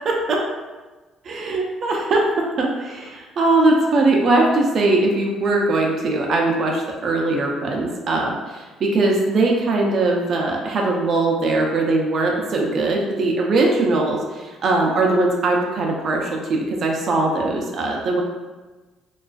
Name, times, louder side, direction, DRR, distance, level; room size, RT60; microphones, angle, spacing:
voice 1, 1.2-18.2, right 2 dB, 45° right, 0 dB, 0.4 m, -20 dB
2.3 x 2.3 x 2.4 m, 1.2 s
cardioid pair, 130°, 0 cm